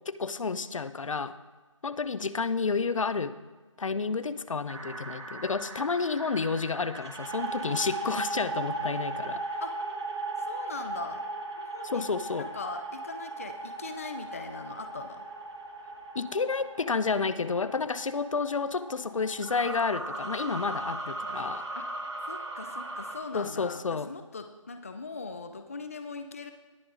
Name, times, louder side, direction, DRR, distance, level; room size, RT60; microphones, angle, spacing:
voice 1, 0.1-1.3 1.8-3.3 3.8-9.4 11.8-12.5 16.1-21.7 23.3-24.1, left 4 dB, 70° left, 14 dB, 0.6 m, -30 dB
sound 1, 4.7-23.2, right 2 dB, 55° right, 2.2 m, -37 dB
voice 2, 10.4-11.2 11.6-12.1 12.4-15.3 21.8-21.9 22.3-26.5, left 4 dB, 25° left, 8 dB, 0.4 m, -40 dB
19.0 x 8.1 x 2.5 m, 1.3 s
figure-of-eight pair, 165°, 17 cm